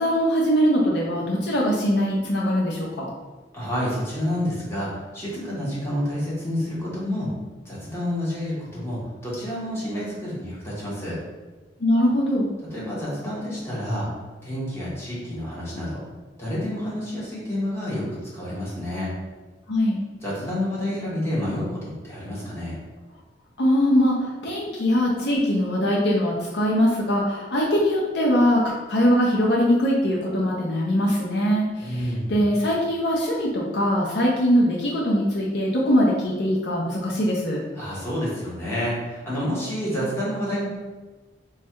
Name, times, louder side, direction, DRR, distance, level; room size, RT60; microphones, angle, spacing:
voice 1, 0.0-3.1 11.8-12.5 19.7-20.0 23.6-37.6, equal, 65° left, -4 dB, 0.6 m, -22 dB
voice 2, 3.5-7.3 7.6-11.2 12.7-14.1 14.4-16.0 16.4-19.1 20.2-22.8 31.8-32.4 37.7-40.6, left 1 dB, 15° left, -7 dB, 1.2 m, -29 dB
3.2 x 2.3 x 4.4 m, 1.3 s
head